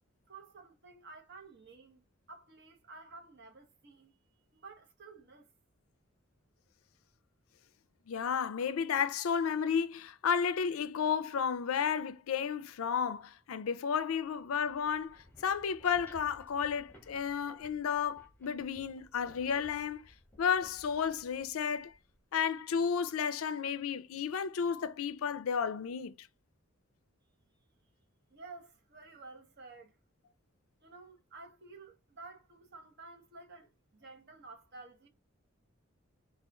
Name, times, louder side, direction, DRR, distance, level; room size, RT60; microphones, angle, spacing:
voice 1, 0.3-4.2 4.5-5.5 28.3-29.9 30.8-35.1, right 3 dB, 50° right, 1.0 m, -52 dB
voice 2, 8.1-20.1 20.4-21.9 22.3-26.3, left 7 dB, 85° left, 0.4 m, -32 dB
sound 1, 14.4-22.4, equal, 10° left, 0.9 m, -59 dB
4.3 x 2.4 x 3.4 m
head